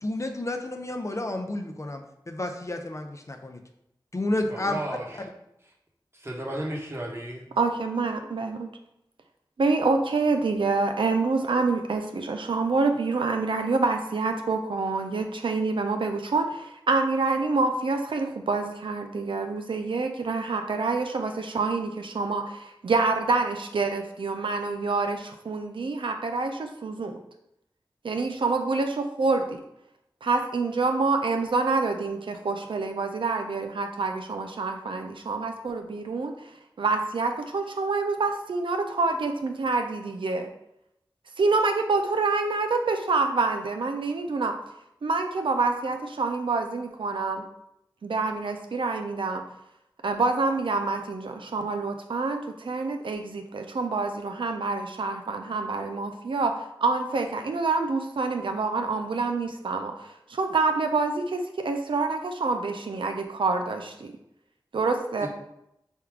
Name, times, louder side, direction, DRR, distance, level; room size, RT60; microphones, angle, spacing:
voice 1, 0.0-3.6 4.1-4.8, left 1 dB, 40° left, 4 dB, 0.5 m, -31 dB
voice 2, 4.5-5.0 6.1-7.5 65.2-65.3, right 1 dB, 30° right, -2 dB, 1.0 m, -33 dB
voice 3, 7.6-8.7 9.6-27.2 28.0-29.6 30.2-36.5 36.8-40.5 41.4-44.5 45.0-47.4 48.0-49.4 50.0-64.1 64.7-65.3, right 3 dB, 85° right, 5 dB, 0.4 m, -27 dB
3.5 x 2.3 x 4.5 m, 0.80 s
wide cardioid pair, 45°, 8 cm